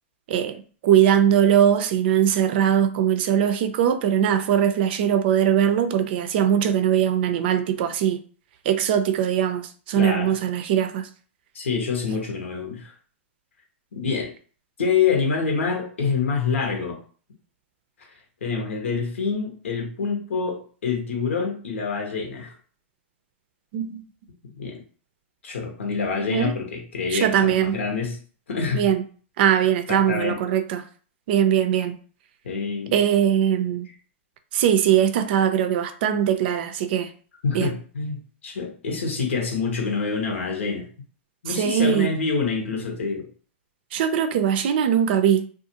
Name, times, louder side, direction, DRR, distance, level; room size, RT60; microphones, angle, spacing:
voice 1, 0.3-8.2 8.7-9.6 9.9-11.1 23.7-24.0 26.2-26.5 27.1-27.8 28.7-29.0 29.4-30.8 31.3-32.0 32.9-33.9 34.5-37.1 37.5-37.7 41.5-42.1 43.9-45.5, right 9 dB, 55° right, 0.4 m, -21 dB
voice 2, 10.0-10.3 11.5-12.9 13.9-14.3 14.8-17.0 18.4-22.5 24.6-24.8 25.4-28.2 28.5-28.9 29.9-30.4 32.4-32.9 37.4-40.9 41.4-43.3, left 5 dB, 85° left, 0.9 m, -26 dB
2.5 x 2.4 x 2.8 m
hypercardioid pair, 125°, 7 cm